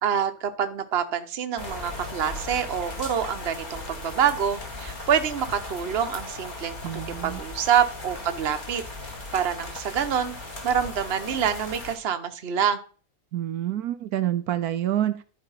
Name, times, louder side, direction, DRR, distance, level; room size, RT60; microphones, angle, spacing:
voice 1, 0.0-6.8 7.2-8.8 9.3-10.4 10.6-12.8, right 8 dB, 45° right, 8 dB, 1.1 m, -26 dB
sound 1, 1.6-12.0, left 2 dB, 30° left, 2.0 m, -37 dB
voice 2, 6.8-7.4 13.3-15.2, right 12 dB, 80° right, 10 dB, 1.2 m, -27 dB
12.0 x 4.7 x 5.7 m, 0.40 s
omnidirectional pair, 1.6 m